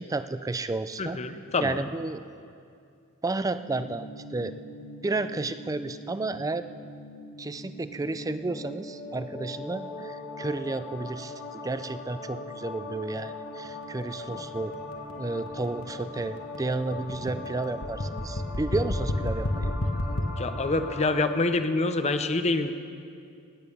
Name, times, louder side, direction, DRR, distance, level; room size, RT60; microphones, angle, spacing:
voice 1, 0.0-1.2 1.6-2.2 3.2-4.5 5.0-6.7 7.4-14.7 15.2-19.7, right 2 dB, 15° right, 12 dB, 0.3 m, -32 dB
voice 2, 1.0-1.9 20.4-22.7, left 3 dB, 30° left, 9 dB, 0.6 m, -26 dB
sound 1, 3.7-21.4, left 2 dB, 50° left, 1.1 m, -40 dB
sound 2, 12.9-20.2, left 1 dB, 65° left, 1.3 m, -31 dB
18.0 x 9.1 x 5.4 m, 2.4 s
head